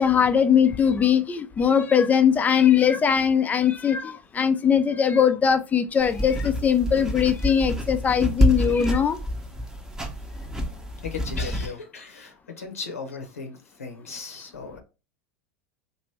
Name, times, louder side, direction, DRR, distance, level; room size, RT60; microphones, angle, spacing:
voice 1, 0.0-9.2, left 7 dB, 20° left, 0.4 m, -20 dB
sound 1, 6.0-11.7, left 1 dB, 5° right, 0.8 m, -27 dB
voice 2, 11.0-14.8, left 5 dB, 85° left, 0.8 m, -37 dB
2.9 x 2.6 x 3.2 m
hypercardioid pair, 90°, 8 cm